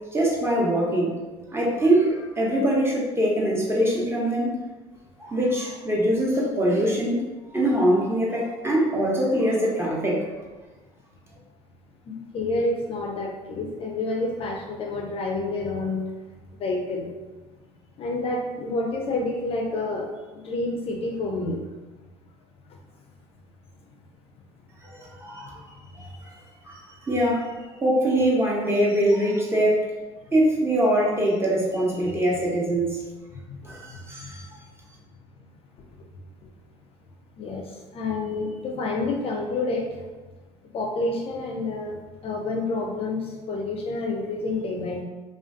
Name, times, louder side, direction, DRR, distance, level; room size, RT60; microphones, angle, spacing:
voice 1, 0.1-1.1 1.5-4.5 5.2-7.3 7.5-10.3 24.8-26.3 26.6-29.9 30.3-33.0 33.6-34.5, right 1 dB, 15° right, -4 dB, 0.8 m, -23 dB
voice 2, 12.1-16.0 16.6-17.1 18.0-20.1 20.3-21.6 33.5-33.6 37.4-37.6 37.9-39.9 40.7-42.0 42.2-45.0, left 2 dB, 40° left, 0 dB, 0.4 m, -28 dB
2.4 x 2.3 x 2.4 m, 1.2 s
hypercardioid pair, 65°, 15 cm